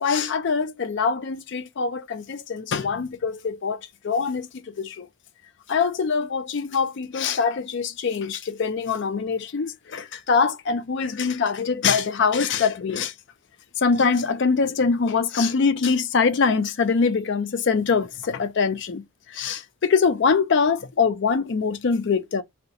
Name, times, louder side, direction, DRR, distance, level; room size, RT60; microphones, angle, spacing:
voice 1, 0.0-5.1 5.7-13.1 13.8-22.4, left 5 dB, 55° left, 0.4 m, -23 dB
2.8 x 2.2 x 3.9 m
head